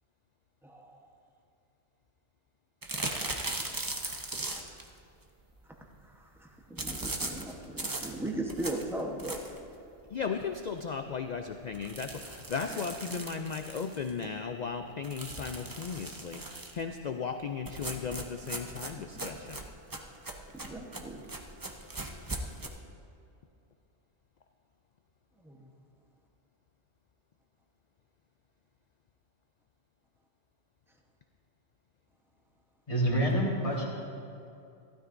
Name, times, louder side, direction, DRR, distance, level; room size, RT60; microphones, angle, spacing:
voice 1, 0.6-1.1 6.0-9.4 12.7-12.8 19.0-19.4 20.5-21.2 25.4-25.7, right 1 dB, ahead, 0 dB, 0.9 m, -39 dB
sound 1, 2.8-4.9 6.8-9.7 10.1-10.2 10.6-10.7 11.0-11.1 11.7-14.2 15.0-16.8 17.6-22.7, right 2 dB, 25° right, 0.5 m, -39 dB
voice 2, 10.1-19.6, left 5 dB, 80° left, 6 dB, 0.3 m, -36 dB
voice 3, 32.9-33.8, right 1 dB, 30° left, -3 dB, 1.7 m, -27 dB
15.0 x 12.5 x 2.6 m, 2.6 s
omnidirectional pair, 1.3 m